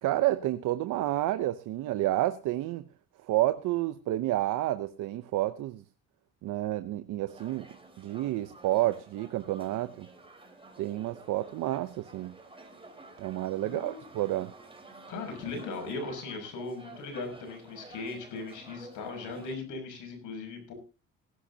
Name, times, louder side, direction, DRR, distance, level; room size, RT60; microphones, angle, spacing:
voice 1, 0.0-2.8 3.3-5.8 6.4-7.6 8.0-10.1 10.8-12.4 13.2-14.5, right 15 dB, 85° right, 0.8 m, -30 dB
sound 1, 7.3-19.6, right 2 dB, 20° right, 4.2 m, -51 dB
voice 2, 13.6-14.0 15.1-20.7, left 3 dB, 90° left, 6.4 m, -38 dB
19.5 x 11.5 x 2.8 m
cardioid pair, 90°, 30 cm